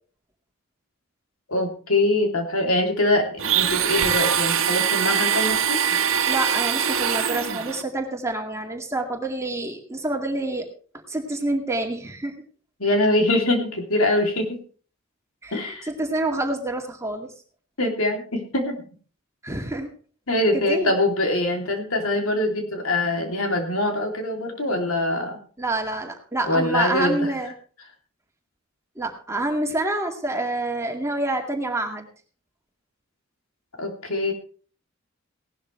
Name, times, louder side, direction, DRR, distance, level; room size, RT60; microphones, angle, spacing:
voice 1, 1.5-6.0 12.8-14.6 15.5-15.9 17.8-18.9 20.3-25.4 26.5-27.2 33.8-34.3, left 1 dB, 85° left, 3 dB, 3.2 m, -23 dB
Domestic sounds home sounds, 3.4-7.8, right 8 dB, 75° right, 1.4 m, -22 dB
voice 2, 6.3-10.7 11.1-12.4 15.4-17.3 19.4-19.9 20.5-21.0 25.6-27.5 29.0-32.1, right 2 dB, 15° right, 2 dB, 2.1 m, -27 dB
17.5 x 12.0 x 3.3 m, 0.41 s
head